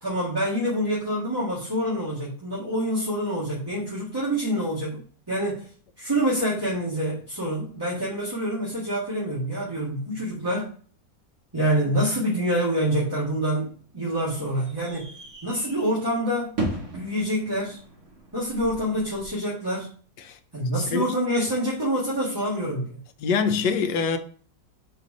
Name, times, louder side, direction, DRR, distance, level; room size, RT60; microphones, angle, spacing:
voice 1, 0.0-5.0 5.3-5.7 6.0-10.7 11.5-13.7 13.9-15.1 15.4-16.5 16.9-17.8 18.3-19.9 20.5-23.0, equal, 15° right, 1.7 m, -26 dB
sound 1, 13.7-19.3, right 1 dB, 60° right, 2.5 m, -37 dB
voice 2, 23.2-24.2, left 5 dB, 80° left, 1.4 m, -24 dB
5.4 x 4.5 x 5.2 m
omnidirectional pair, 1.9 m